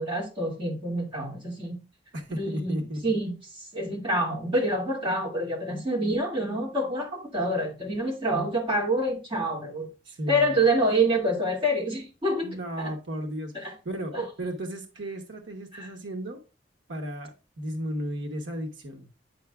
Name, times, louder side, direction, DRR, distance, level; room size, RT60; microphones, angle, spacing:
voice 1, 0.0-1.8 2.4-2.7 3.0-3.3 3.7-9.9 10.3-12.5 12.8-12.9 13.5-13.7 14.1-14.3 15.7-15.9, right 1 dB, 30° right, 2.3 m, -27 dB
voice 2, 2.1-3.2 10.1-10.6 12.4-16.4 16.9-19.1, equal, 90° right, 1.0 m, -34 dB
9.2 x 5.7 x 2.3 m
head